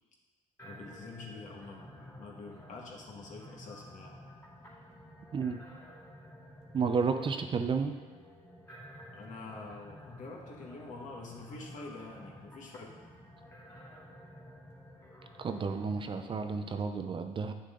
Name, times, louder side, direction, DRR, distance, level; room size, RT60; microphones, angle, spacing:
voice 1, 0.6-4.2 9.1-12.9, left 3 dB, 55° left, -1 dB, 1.9 m, -46 dB
sound 1, 0.6-16.8, equal, 15° left, 2.2 m, -52 dB
voice 2, 6.7-8.0 15.4-17.5, right 5 dB, 35° right, 7 dB, 0.7 m, -31 dB
9.5 x 6.6 x 3.8 m, 1.3 s
cardioid pair, 95°, 15 cm